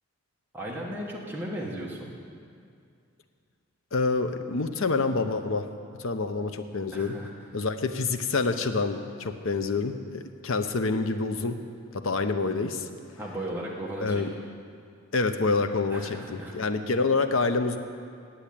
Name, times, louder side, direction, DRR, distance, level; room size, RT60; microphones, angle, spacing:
voice 1, 0.5-2.1 6.9-7.3 13.2-14.2 15.9-16.5, right 1 dB, 10° right, -4 dB, 1.2 m, -35 dB
voice 2, 3.9-5.7 6.0-7.1 7.5-11.6 11.9-12.9 14.0-14.3 15.1-17.8, left 3 dB, 60° left, 8 dB, 0.7 m, -27 dB
10.0 x 7.9 x 8.7 m, 2.3 s
head